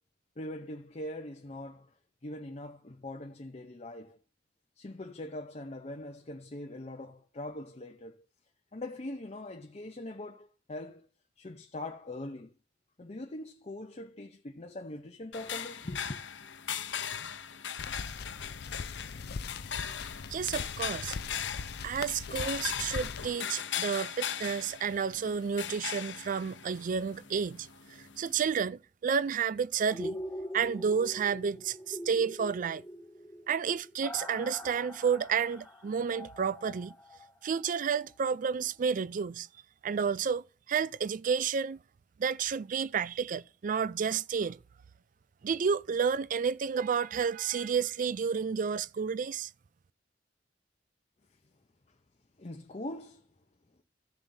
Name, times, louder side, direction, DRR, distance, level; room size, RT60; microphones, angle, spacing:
voice 1, 0.4-1.9 2.2-4.2 4.8-8.2 8.7-11.1 11.4-12.5 13.0-16.2 52.4-53.3, left 1 dB, 35° left, 0.7 m, -42 dB
sound 1, 15.3-28.5, left 8 dB, 85° left, 0.9 m, -39 dB
sound 2, 17.8-23.3, left 5 dB, 60° left, 0.4 m, -41 dB
voice 2, 20.3-21.2 21.8-30.2 30.5-32.8 33.5-37.0 37.4-39.5 39.8-41.8 42.2-44.6 45.4-49.5, right 6 dB, 45° right, 0.4 m, -31 dB
sound 3, 29.9-37.8 38.1-38.2, equal, 5° left, 3.0 m, -43 dB
15.0 x 6.9 x 2.7 m
head